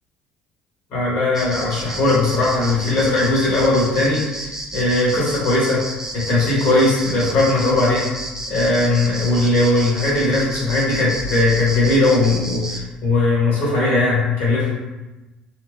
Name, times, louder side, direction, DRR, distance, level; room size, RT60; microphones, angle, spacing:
voice 1, 0.9-4.5 4.7-5.8 6.1-8.1 8.5-14.7, left 2 dB, 55° left, -6 dB, 1.2 m, -18 dB
sound 1, 1.3-12.8, right 1 dB, 15° right, 0.5 m, -32 dB
2.6 x 2.5 x 3.4 m, 1.1 s
figure-of-eight pair, 55°, 4 cm